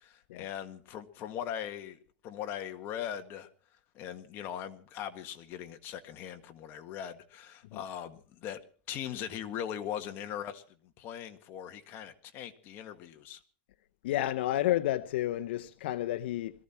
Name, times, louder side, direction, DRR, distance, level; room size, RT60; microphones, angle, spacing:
voice 1, 0.0-3.5 4.0-8.6 8.9-13.4, left 10 dB, 40° left, 1.8 m, -40 dB
voice 2, 14.0-16.6, left 14 dB, 75° left, 0.7 m, -31 dB
22.0 x 14.5 x 4.4 m
supercardioid pair, 140°, 6 cm